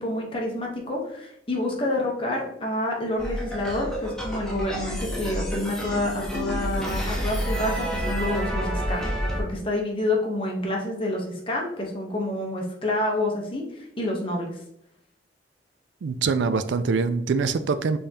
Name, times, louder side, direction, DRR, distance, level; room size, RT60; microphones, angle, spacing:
voice 1, 0.0-9.0 9.4-14.5, left 1 dB, 30° left, -1 dB, 1.0 m, -28 dB
sound 1, 3.2-9.4, equal, 5° left, 0.7 m, -29 dB
voice 2, 16.0-18.0, right 4 dB, 75° right, 11 dB, 0.4 m, -24 dB
5.2 x 3.5 x 2.8 m, 0.76 s
head